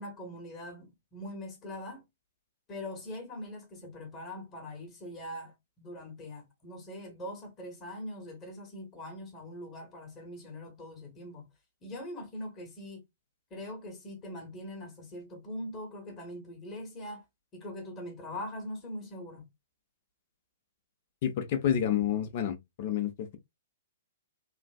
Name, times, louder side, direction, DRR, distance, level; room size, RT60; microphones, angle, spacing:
voice 1, 0.0-2.0 2.7-11.5 11.8-13.0 13.5-17.2 17.5-19.5, left 1 dB, 25° left, 1.1 m, -42 dB
voice 2, 21.2-23.4, left 9 dB, 45° left, 0.6 m, -29 dB
3.2 x 2.5 x 2.2 m
figure-of-eight pair, 115°, 0 cm